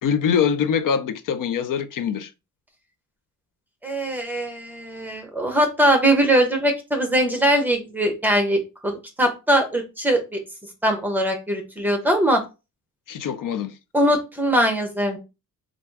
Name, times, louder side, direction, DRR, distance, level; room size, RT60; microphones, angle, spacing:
voice 1, 0.0-2.3 13.1-13.7, left 7 dB, 75° left, 0.5 m, -23 dB
voice 2, 3.8-10.2 10.8-12.4 13.9-15.2, right 1 dB, 5° right, 0.8 m, -21 dB
3.4 x 2.6 x 4.5 m
wide cardioid pair, 175°, 32 cm